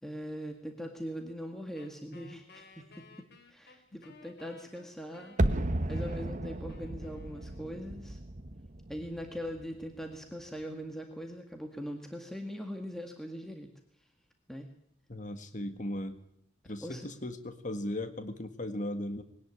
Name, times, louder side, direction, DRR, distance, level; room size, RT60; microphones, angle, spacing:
voice 1, 0.0-5.4 5.9-8.2 8.9-13.7 14.5-14.7 16.8-17.1, equal, ahead, 4 dB, 1.9 m, -41 dB
Wind instrument woodwind instrument, 1.7-8.0, left 3 dB, 55° left, 3.4 m, -57 dB
sound 1, 5.4-10.3 10.6-10.7, right 1 dB, 40° right, 1.2 m, -34 dB
voice 2, 15.1-16.2 16.7-19.2, left 1 dB, 40° left, 9 dB, 1.8 m, -37 dB
21.0 x 18.0 x 9.9 m, 0.70 s
head